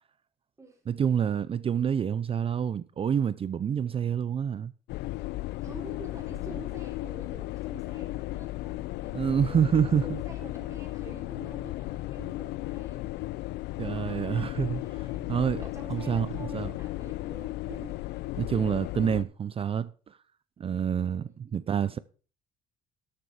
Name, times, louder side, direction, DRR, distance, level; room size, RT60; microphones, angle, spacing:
voice 1, 0.9-4.7 9.1-10.2 13.8-14.8 15.3-15.6 15.9-16.7 18.4-20.2 20.6-22.0, right 8 dB, 35° right, 0.5 m, -27 dB
voice 2, 3.6-3.9 5.6-13.5 13.8-18.7 21.0-21.4, right 2 dB, 20° right, 4.2 m, -47 dB
sound 1, 4.9-19.2, left 18 dB, 80° left, 0.4 m, -35 dB
13.0 x 7.0 x 4.8 m
cardioid pair, 110°, 17 cm